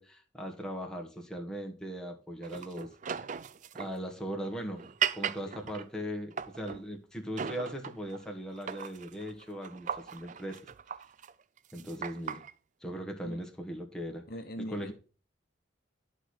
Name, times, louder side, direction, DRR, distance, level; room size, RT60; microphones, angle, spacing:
voice 1, 0.0-2.9 3.7-10.6 11.7-12.4 12.8-14.2 14.7-14.9, equal, 5° left, 1 dB, 1.5 m, -39 dB
sound 1, 2.4-6.9 7.4-8.2 8.6-12.5, right 8 dB, 40° right, 0.4 m, -38 dB
voice 2, 14.3-14.9, equal, 55° left, 6 dB, 1.1 m, -42 dB
11.5 x 4.9 x 4.3 m, 0.36 s
head